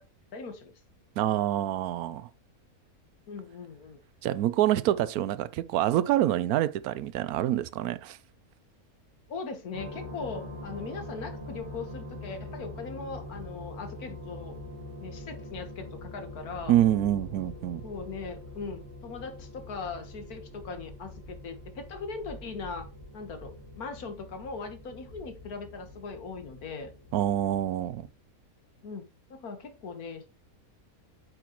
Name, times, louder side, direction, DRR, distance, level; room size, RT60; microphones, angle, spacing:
voice 1, 0.3-0.7 3.3-4.0 9.3-14.6 15.0-16.7 17.8-22.9 23.1-26.9 28.8-29.0 29.3-30.3, left 4 dB, 85° left, 1.8 m, -40 dB
voice 2, 1.2-2.3 4.2-8.2 16.7-17.9 27.1-28.0, right 12 dB, 85° right, 1.1 m, -26 dB
sound 1, 9.7-28.1, left 1 dB, 55° right, 2.1 m, -44 dB
9.0 x 6.2 x 3.0 m
omnidirectional pair, 1.5 m